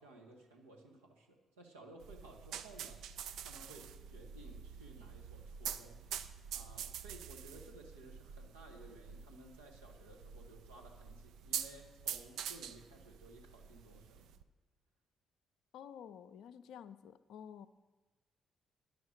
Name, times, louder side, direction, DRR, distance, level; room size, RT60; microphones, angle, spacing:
voice 1, 0.0-3.0 3.4-14.3, right 2 dB, 90° right, -2 dB, 1.1 m, -57 dB
sound 1, 2.0-14.4, right 8 dB, 70° right, 0.4 m, -46 dB
voice 2, 15.7-17.7, left 8 dB, 70° left, 12 dB, 0.4 m, -51 dB
10.5 x 6.5 x 6.5 m, 1.2 s
hypercardioid pair, 45°, 0 cm